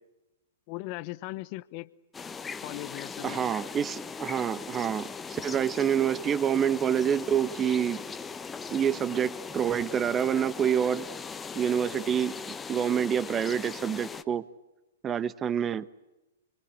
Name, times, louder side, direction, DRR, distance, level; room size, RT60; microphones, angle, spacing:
voice 1, 0.7-1.9 2.6-3.5, left 20 dB, 45° left, 15 dB, 0.9 m, -38 dB
sound 1, 2.1-14.2, left 5 dB, 15° left, 1.2 m, -39 dB
voice 2, 3.2-8.0 8.7-11.1 11.5-12.3 12.7-14.4 15.0-15.9, right 8 dB, 20° right, 16 dB, 1.2 m, -27 dB
25.5 x 23.5 x 9.7 m, 1.0 s
hypercardioid pair, 120°, 0 cm